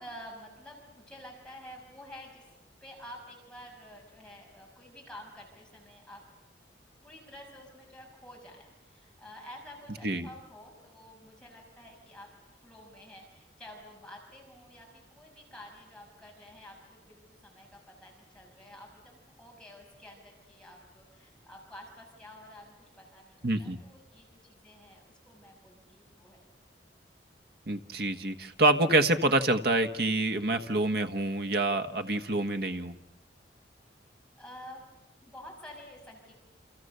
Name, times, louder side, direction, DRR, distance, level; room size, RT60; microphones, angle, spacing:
voice 1, 0.0-2.5 2.8-6.2 7.0-26.4 34.4-34.8 35.2-36.3, left 1 dB, 5° left, -1 dB, 6.4 m, -50 dB
voice 2, 23.4-23.8 27.7-32.9, right 2 dB, 60° right, 8 dB, 1.4 m, -27 dB
29.5 x 28.0 x 6.8 m, 0.94 s
head